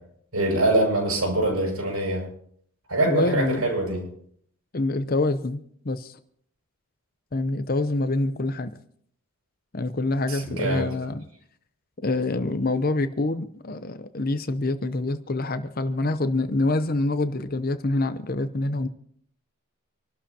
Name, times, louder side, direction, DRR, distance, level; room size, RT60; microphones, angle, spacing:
voice 1, 0.3-2.3 2.9-4.0 10.3-10.9, right 2 dB, 80° right, 0 dB, 7.8 m, -24 dB
voice 2, 3.1-3.7 4.7-5.6 5.8-6.2 7.3-8.8 9.7-11.2 12.0-18.9, left 2 dB, 40° left, 11 dB, 0.7 m, -26 dB
26.5 x 12.5 x 2.9 m, 0.63 s
head